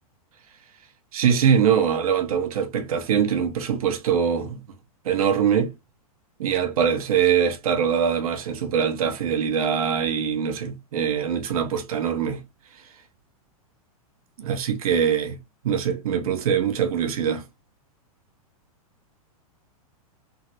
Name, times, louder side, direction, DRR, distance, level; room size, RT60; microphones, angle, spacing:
voice 1, 1.1-4.6 5.0-5.7 6.4-12.4 14.4-15.4 15.6-17.4, right 7 dB, 75° right, 1.1 m, -23 dB
3.6 x 2.1 x 3.0 m
hypercardioid pair, 130°, 19 cm